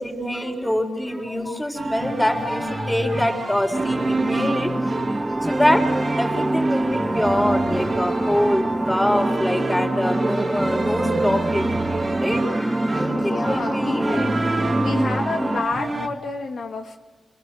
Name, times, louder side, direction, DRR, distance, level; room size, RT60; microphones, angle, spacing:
voice 1, 0.0-4.7 5.4-11.8 12.2-14.2, left 1 dB, 10° left, 3 dB, 4.2 m, -24 dB
sound 1, 1.7-16.1, right 3 dB, 40° right, 2.4 m, -28 dB
sound 2, 3.7-15.7, right 1 dB, 10° right, 0.7 m, -25 dB
voice 2, 13.1-17.0, left 4 dB, 70° left, 3 dB, 1.7 m, -30 dB
28.0 x 21.5 x 7.6 m, 1.3 s
cardioid pair, 80°, 0 cm